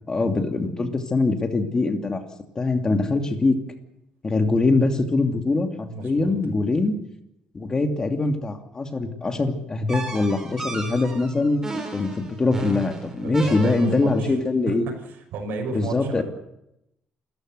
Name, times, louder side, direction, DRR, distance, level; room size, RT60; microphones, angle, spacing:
voice 1, 0.1-2.2 2.5-3.6 4.2-7.0 7.5-11.6 11.9-14.8 15.7-16.2, left 3 dB, 20° left, 7 dB, 2.7 m, -23 dB
voice 2, 5.9-6.4 13.2-14.4 14.7-14.8 15.1-16.2, right 3 dB, 70° right, 3 dB, 6.3 m, -32 dB
sound 1, 9.9-14.2, right 3 dB, 15° right, 4.4 m, -34 dB
28.5 x 14.0 x 8.1 m, 0.83 s
cardioid pair, 155°, 3 cm